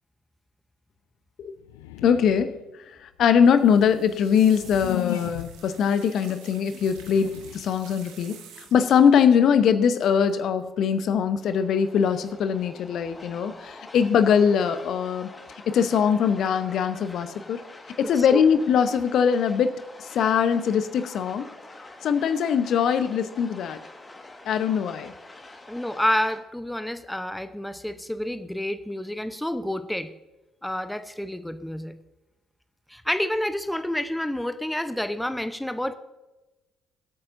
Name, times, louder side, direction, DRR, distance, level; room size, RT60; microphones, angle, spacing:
sound 1, 1.6-2.7 3.3-5.8 6.7-7.8, left 18 dB, 75° left, 0.4 m, -36 dB
voice 1, 2.0-15.3 15.7-17.6 18.0-21.5 22.0-23.8 24.4-25.1, left 7 dB, 55° left, 11 dB, 0.8 m, -22 dB
sound 2, 3.5-9.0 10.0-10.3 10.6-10.9 12.1-12.7 13.0-13.6 14.0-14.4 14.8-14.9, right 7 dB, 70° right, 1.6 m, -49 dB
sound 3, 11.4-26.4, left 2 dB, 25° left, 1.7 m, -46 dB
voice 2, 25.7-30.1 30.6-32.0 32.9-35.9, left 1 dB, 5° left, 12 dB, 0.8 m, -29 dB
23.0 x 8.6 x 2.7 m, 1.1 s
figure-of-eight pair, 50°, 0 cm